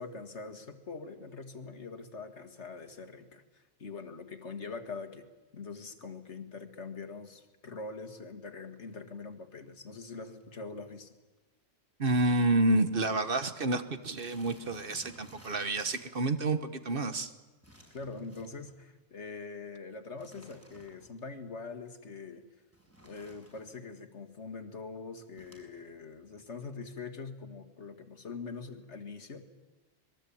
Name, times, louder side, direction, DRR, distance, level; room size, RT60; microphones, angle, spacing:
voice 1, 0.0-5.3 5.5-11.1 17.9-22.4 23.0-29.5, left 4 dB, 85° left, 7 dB, 2.2 m, -43 dB
sound 1, 8.7-9.0 9.7-9.8 10.0-10.1 10.3-10.6 10.9-11.0 11.4-11.5 12.2-12.3 12.5-12.8 13.1-13.2 14.0-16.3 17.6-18.8 20.2-21.2 22.7-23.8 25.3-25.6, equal, 10° right, 5.9 m, -56 dB
voice 2, 12.0-17.3, right 2 dB, 55° right, 10 dB, 1.5 m, -29 dB
26.0 x 21.5 x 8.6 m, 1.1 s
omnidirectional pair, 1.1 m